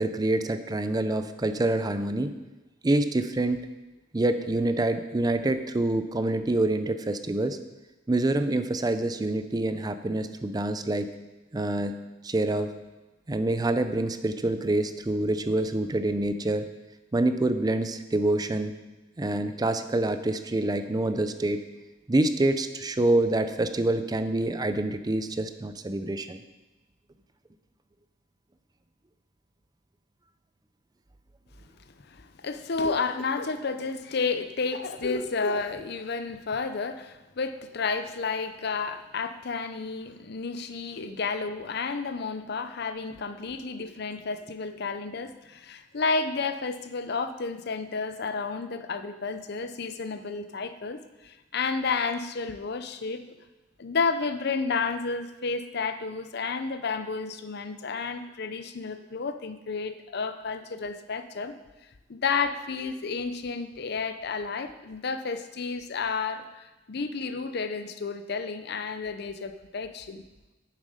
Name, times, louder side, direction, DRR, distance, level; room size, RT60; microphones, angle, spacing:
voice 1, 0.0-2.3 2.8-3.6 4.1-7.6 8.1-11.1 11.5-11.9 12.2-12.7 13.3-16.7 17.1-18.7 19.2-21.6 22.1-26.4, right 2 dB, 20° right, 10 dB, 0.4 m, -26 dB
voice 2, 32.1-53.2 53.8-61.5 62.1-70.2, left 4 dB, 55° left, 10 dB, 0.6 m, -31 dB
9.2 x 7.4 x 5.0 m, 1.1 s
head